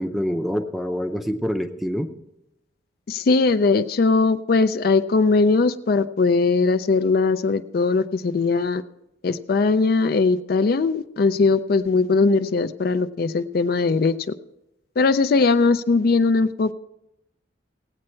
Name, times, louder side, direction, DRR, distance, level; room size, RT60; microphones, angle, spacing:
voice 1, 0.0-2.1, equal, ahead, 7 dB, 0.6 m, -26 dB
voice 2, 3.1-8.8 9.2-14.2 15.0-16.7, left 4 dB, 50° left, 11 dB, 0.4 m, -20 dB
17.5 x 8.6 x 4.4 m, 0.86 s
head